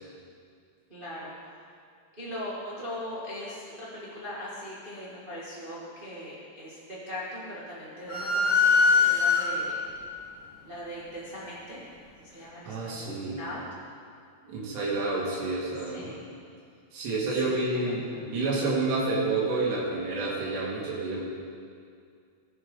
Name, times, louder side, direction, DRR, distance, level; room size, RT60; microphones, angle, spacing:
voice 1, 0.9-1.3 2.2-9.7 10.6-11.8 12.2-13.6 15.9-16.2 17.4-17.9, left 1 dB, 65° right, -8 dB, 0.5 m, -40 dB
sound 1, 8.1-9.9, left 4 dB, 70° left, 1.1 m, -22 dB
voice 2, 12.4-13.4 14.4-16.1 16.9-21.2, right 3 dB, 85° right, -6 dB, 4.1 m, -29 dB
16.5 x 8.7 x 3.8 m, 2.3 s
omnidirectional pair, 4.7 m